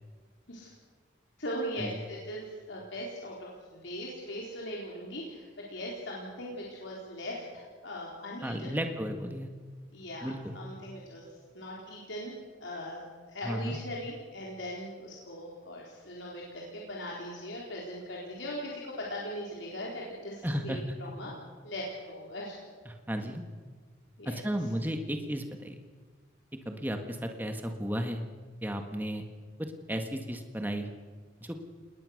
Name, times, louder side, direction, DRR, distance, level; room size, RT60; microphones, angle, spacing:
voice 1, 1.4-8.8 9.9-11.2 11.5-12.3 12.6-21.3 21.6-22.6 24.2-24.4, equal, 75° left, -3 dB, 4.1 m, -40 dB
voice 2, 8.4-9.5 10.2-10.6 13.4-13.8 20.4-20.8 22.8-23.4 24.2-25.8 26.6-28.2 28.6-29.2 29.6-30.9 31.4-31.6, equal, 10° right, 5 dB, 1.6 m, -34 dB
30.0 x 19.5 x 6.6 m, 1.5 s
head